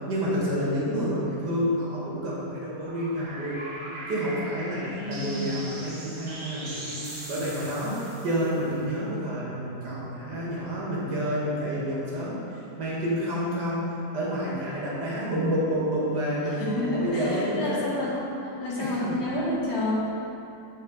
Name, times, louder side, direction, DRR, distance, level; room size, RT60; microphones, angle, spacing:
voice 1, 0.1-3.6 4.1-12.4 12.8-17.8 18.8-19.2, equal, 80° right, -7 dB, 2.2 m, -29 dB
sound 1, 2.8-9.3, right 1 dB, 45° right, 0.3 m, -40 dB
voice 2, 4.9-5.5 16.4-19.9, left 1 dB, 75° left, -8 dB, 2.2 m, -30 dB
10.5 x 3.6 x 3.9 m, 2.8 s
omnidirectional pair, 1.8 m